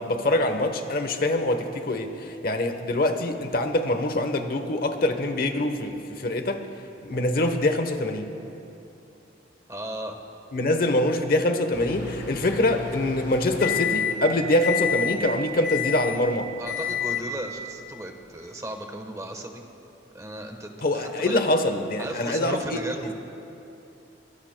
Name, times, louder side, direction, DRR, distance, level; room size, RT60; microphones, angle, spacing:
voice 1, 0.0-6.6 7.0-8.3 10.5-16.5 20.8-22.8, left 1 dB, 55° left, 7 dB, 1.0 m, -24 dB
voice 2, 9.7-10.2 16.6-19.6 20.1-21.4 22.0-23.1, right 1 dB, 20° right, 4 dB, 1.1 m, -36 dB
Microwave oven, 11.7-14.3 14.6-15.2 15.6-16.2 16.7-17.3, left 8 dB, 80° left, 3.9 m, -29 dB
23.0 x 23.0 x 2.2 m, 2.7 s
head